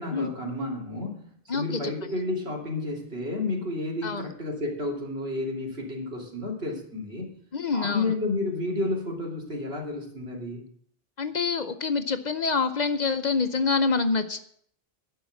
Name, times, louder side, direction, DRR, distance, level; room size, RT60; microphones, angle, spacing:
voice 1, 0.0-7.3 7.7-10.6, left 2 dB, 85° right, -2 dB, 3.3 m, -31 dB
voice 2, 1.5-1.9 4.0-4.3 7.5-8.1 11.2-14.4, left 4 dB, 50° left, 9 dB, 0.8 m, -26 dB
11.5 x 5.6 x 8.2 m, 0.64 s
omnidirectional pair, 1.0 m